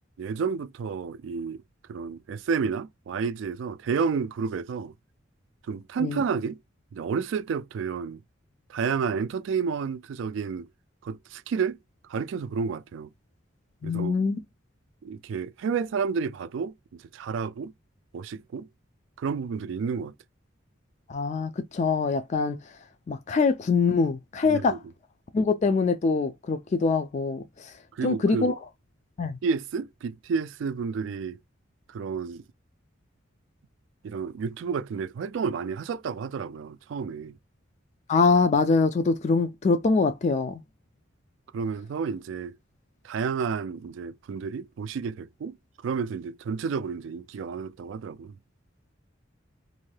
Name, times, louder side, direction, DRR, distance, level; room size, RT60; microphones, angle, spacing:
voice 1, 0.2-1.6 1.9-4.9 5.7-6.6 6.9-8.2 8.7-10.7 11.0-11.8 12.1-13.1 13.8-14.2 15.0-17.7 18.1-18.7 19.2-20.1 24.4-24.8 27.9-28.5 29.4-31.4 31.9-32.4 34.0-37.4 41.5-42.6 43.0-45.6 45.8-48.4, right 5 dB, 70° right, 0.3 m, -30 dB
voice 2, 13.8-14.4 21.1-22.6 23.1-24.8 25.3-27.7 28.0-28.5 29.2-29.4 38.1-40.6, left 4 dB, 35° left, 0.3 m, -24 dB
2.6 x 2.2 x 3.1 m
head